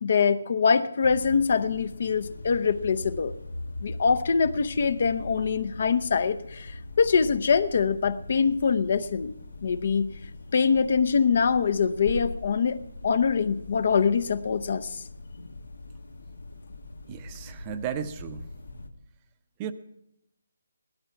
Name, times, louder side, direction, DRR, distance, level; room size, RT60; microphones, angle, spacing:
voice 1, 0.0-3.3 3.8-9.3 9.6-10.1 10.5-15.0, left 5 dB, 50° left, 14 dB, 0.7 m, -24 dB
sound 1, 1.0-18.9, left 2 dB, 80° left, 1.5 m, -41 dB
voice 2, 17.1-18.5 19.6-19.7, right 8 dB, 20° right, 10 dB, 0.6 m, -34 dB
16.0 x 12.5 x 5.8 m, 0.79 s
figure-of-eight pair, 160°, 0 cm